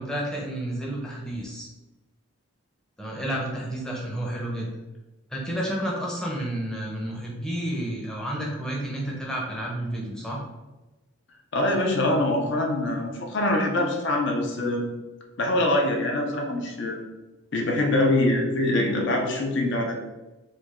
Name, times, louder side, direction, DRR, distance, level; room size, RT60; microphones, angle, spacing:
voice 1, 0.0-1.7 3.0-4.7 5.3-10.4, right 1 dB, 5° left, -3 dB, 0.6 m, -31 dB
voice 2, 11.5-14.8 15.4-17.0 17.5-19.9, left 1 dB, 55° left, 1 dB, 0.6 m, -24 dB
3.2 x 2.3 x 3.5 m, 1.1 s
head